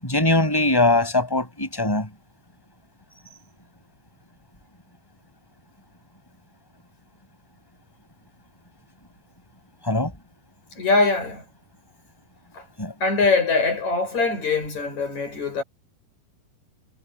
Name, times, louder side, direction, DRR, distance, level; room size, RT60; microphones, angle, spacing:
voice 1, 0.0-2.1 9.8-10.1 12.8-12.9, left 2 dB, 5° left, 7.7 m, -21 dB
voice 2, 10.8-11.4 12.5-12.6 13.0-15.6, left 3 dB, 45° left, 8.9 m, -22 dB
omnidirectional pair, 4.6 m